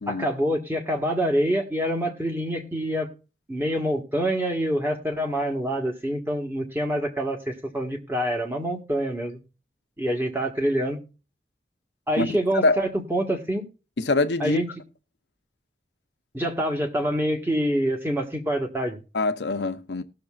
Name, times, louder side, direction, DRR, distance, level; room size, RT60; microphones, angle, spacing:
voice 1, 0.1-3.1 3.5-9.4 10.0-11.0 12.1-13.6 14.4-14.7 16.3-19.0, equal, 15° right, 1.4 m, -26 dB
voice 2, 14.0-14.6 19.1-20.0, left 2 dB, 80° left, 0.7 m, -24 dB
19.5 x 6.5 x 2.4 m
head